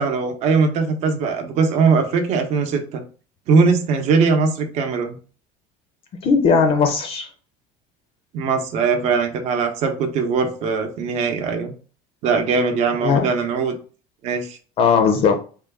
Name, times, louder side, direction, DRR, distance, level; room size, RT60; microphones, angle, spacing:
voice 1, 0.0-3.0 3.5-5.2 8.3-11.7 12.2-13.7 14.2-14.6, right 5 dB, 50° right, 0.8 m, -20 dB
voice 2, 6.2-7.3 13.0-13.2 14.8-15.4, left 5 dB, 40° left, 0.6 m, -17 dB
3.8 x 2.3 x 3.5 m
cardioid pair, 165°, 15 cm